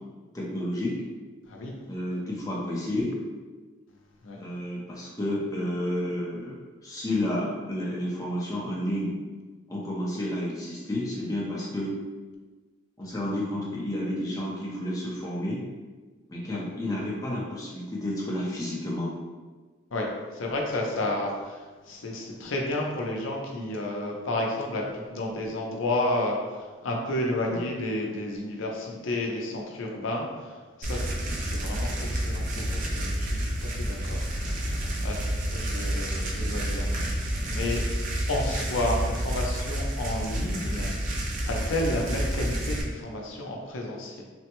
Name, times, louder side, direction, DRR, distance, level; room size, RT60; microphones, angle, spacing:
voice 1, 0.3-1.0 1.9-3.1 4.4-9.2 9.7-11.9 13.0-15.6 16.3-19.1 27.5-27.7, left 1 dB, 15° left, -5 dB, 0.6 m, -31 dB
voice 2, 19.9-37.8 38.3-40.9 41.5-44.2, left 1 dB, 75° left, -1 dB, 0.5 m, -31 dB
sound 1, 30.8-42.8, right 1 dB, 40° right, 0.4 m, -29 dB
3.4 x 2.1 x 3.0 m, 1.3 s
head